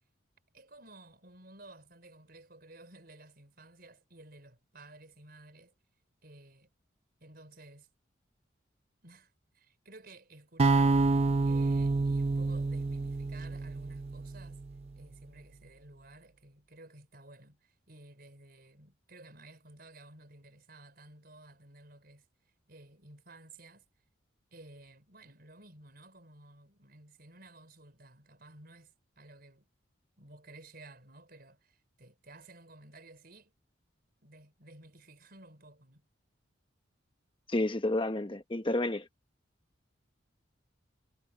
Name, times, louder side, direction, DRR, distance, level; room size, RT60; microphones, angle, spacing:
voice 1, 0.5-5.7 6.2-6.7 7.2-7.9 9.0-11.0 11.5-14.6 14.9-22.3 22.7-23.9 24.5-29.7 30.2-33.5 34.2-36.1, right 2 dB, 50° right, 5.1 m, -54 dB
sound 1, 10.6-14.7, right 3 dB, 30° right, 0.4 m, -28 dB
voice 2, 37.5-39.1, left 1 dB, 25° left, 1.0 m, -30 dB
head